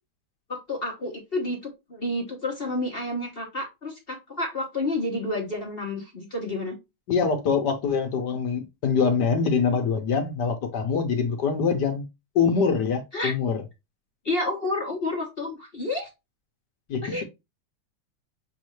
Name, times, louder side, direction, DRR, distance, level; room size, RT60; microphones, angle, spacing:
voice 1, 0.5-1.6 1.9-6.7 13.1-13.3 14.2-16.1 17.0-17.2, left 2 dB, 35° left, 1.1 m, -30 dB
voice 2, 7.1-12.1 12.3-13.6 16.9-17.2, left 5 dB, 60° left, 1.4 m, -24 dB
6.4 x 2.6 x 3.0 m
omnidirectional pair, 2.2 m